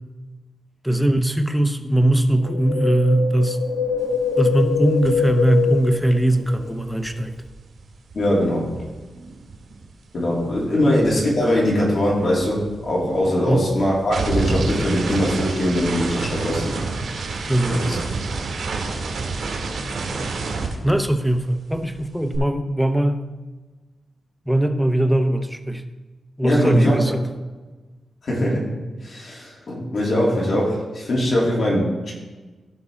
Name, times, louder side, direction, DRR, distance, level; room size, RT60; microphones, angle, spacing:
voice 1, 0.8-3.6 4.4-7.3 10.8-11.0 13.5-13.7 17.5-17.8 20.8-23.2 24.5-25.8 26.4-27.3, right 1 dB, ahead, 6 dB, 0.7 m, -20 dB
Wind, 2.4-6.8 7.0-7.1, left 5 dB, 85° left, 0.9 m, -24 dB
sound 1, 5.0-5.3 5.5-9.9 10.2-21.5 21.7-22.4, right 3 dB, 65° right, 2.1 m, -29 dB
voice 2, 8.1-8.6 10.1-16.7 17.7-18.0 26.4-27.0 28.2-28.7 29.0-32.1, equal, 50° left, -5 dB, 3.1 m, -21 dB
15.0 x 5.4 x 3.7 m, 1.2 s
wide cardioid pair, 140°, 0 cm